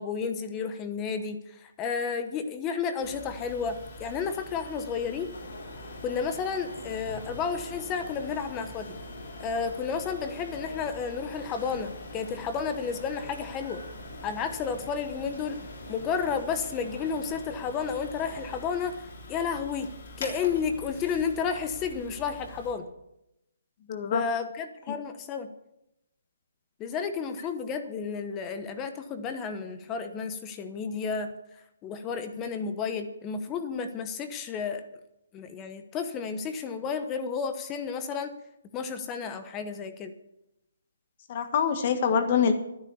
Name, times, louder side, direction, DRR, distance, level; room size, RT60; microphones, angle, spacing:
voice 1, 0.0-5.3 6.0-9.0 9.4-13.8 14.2-15.6 15.9-22.9 24.1-25.5 26.8-34.8 35.3-38.3 38.7-40.1, left 6 dB, 15° left, 9 dB, 1.0 m, -32 dB
sound 1, 3.0-22.7, left 1 dB, 50° left, 3.5 m, -45 dB
sound 2, 5.3-18.7, left 1 dB, 80° left, 6.3 m, -45 dB
voice 2, 23.9-24.2 41.3-42.5, left 7 dB, 35° left, 8 dB, 1.6 m, -24 dB
11.5 x 10.5 x 7.1 m, 0.87 s
hypercardioid pair, 165°, 0 cm